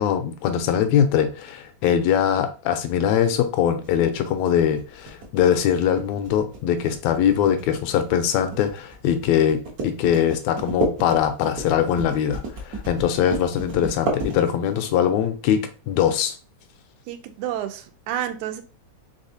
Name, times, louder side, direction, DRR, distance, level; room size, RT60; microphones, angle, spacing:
voice 1, 0.0-16.3, left 9 dB, 80° left, 8 dB, 1.8 m, -22 dB
sound 1, 3.8-14.9, right 2 dB, 60° right, 1.0 m, -32 dB
voice 2, 17.1-18.6, right 11 dB, 90° right, 8 dB, 2.0 m, -30 dB
4.8 x 3.6 x 2.7 m, 0.36 s
omnidirectional pair, 3.3 m